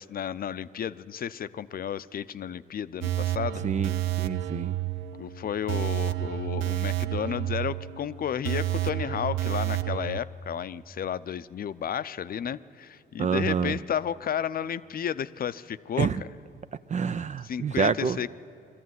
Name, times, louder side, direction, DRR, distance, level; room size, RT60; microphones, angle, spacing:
voice 1, 0.0-3.6 5.2-16.3 17.4-18.3, left 9 dB, 50° left, 14 dB, 0.6 m, -32 dB
sound 1, 3.0-10.2, right 14 dB, 80° right, 0.6 m, -30 dB
voice 2, 4.2-4.7 13.2-13.8 16.0-16.2 16.9-18.2, right 6 dB, 35° right, 13 dB, 0.4 m, -27 dB
22.0 x 14.0 x 9.5 m, 2.4 s
cardioid pair, 90°, 20 cm